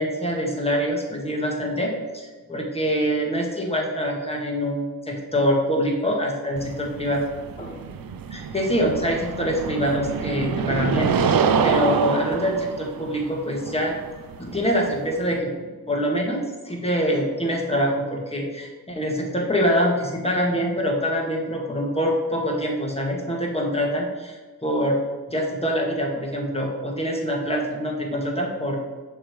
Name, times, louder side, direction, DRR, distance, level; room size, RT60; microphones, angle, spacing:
voice 1, 0.0-7.2 7.6-7.7 8.3-11.1 11.6-13.9 14.4-25.0 25.3-28.8, equal, 15° left, -1 dB, 1.6 m, -25 dB
sound 1, 6.6-15.4, right 6 dB, 60° right, 0.6 m, -26 dB
6.3 x 3.3 x 4.6 m, 1.3 s
cardioid pair, 55°, 40 cm